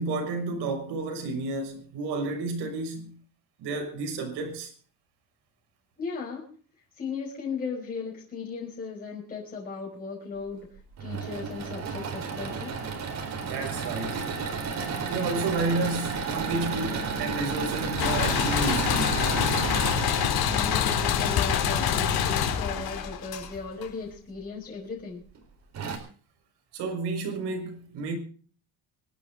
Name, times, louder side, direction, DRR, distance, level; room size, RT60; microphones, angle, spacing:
voice 1, 0.0-3.2 3.6-4.7 13.4-14.4 15.0-19.2 26.7-28.2, right 3 dB, 85° right, 6.0 m, -31 dB
voice 2, 6.0-6.5 7.0-10.7 11.0-12.7 20.4-25.2, left 5 dB, 20° left, 5.4 m, -36 dB
Engine / Mechanisms, 10.8-21.1 22.7-23.4 24.0-24.1 24.4-24.5 25.3-25.4 25.7-26.0, right 5 dB, 45° right, 4.2 m, -32 dB
sound 1, 18.0-23.8, left 8 dB, 65° left, 3.7 m, -26 dB
25.5 x 12.0 x 3.7 m
cardioid pair, 170°, 39 cm